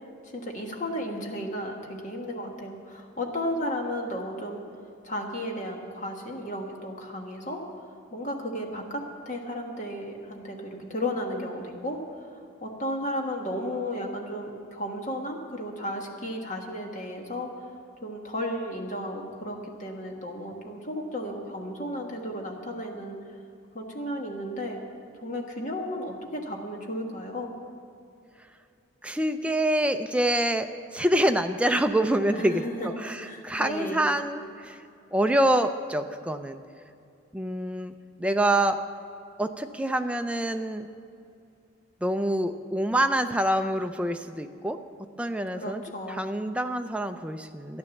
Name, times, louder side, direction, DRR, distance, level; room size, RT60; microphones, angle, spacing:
voice 1, 0.2-4.6 5.0-7.6 8.1-12.0 12.6-17.5 18.0-23.2 23.7-24.8 25.2-27.5 32.3-32.9 33.2-34.1 45.5-46.3, equal, 35° left, 1 dB, 1.5 m, -34 dB
voice 2, 29.0-34.8 35.1-36.6 37.3-37.9 38.2-38.8 39.4-40.9 42.0-44.8 45.2-45.8 46.1-47.8, right 1 dB, 5° right, 7 dB, 0.4 m, -26 dB
13.0 x 11.0 x 7.1 m, 2.5 s
head